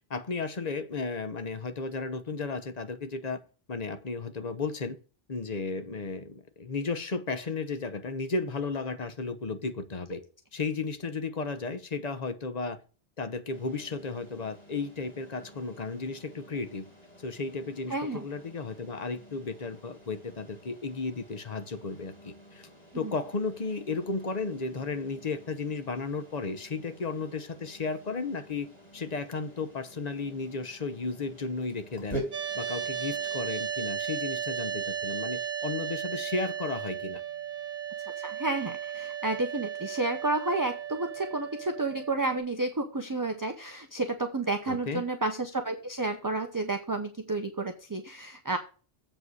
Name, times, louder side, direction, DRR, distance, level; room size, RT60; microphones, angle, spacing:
voice 1, 0.1-3.4 3.7-5.0 5.3-10.2 10.5-12.8 13.2-16.9 17.2-22.7 22.9-28.7 28.9-32.2 32.5-37.2 44.7-45.1, left 4 dB, 40° left, 1.0 m, -34 dB
sound 1, 13.5-33.4, right 1 dB, 10° left, 3.6 m, -47 dB
voice 2, 17.9-18.2 23.0-23.1 38.2-48.6, right 2 dB, 20° right, 0.8 m, -31 dB
sound 2, 32.3-42.4, right 8 dB, 75° right, 1.3 m, -35 dB
7.8 x 5.0 x 6.4 m
omnidirectional pair, 1.0 m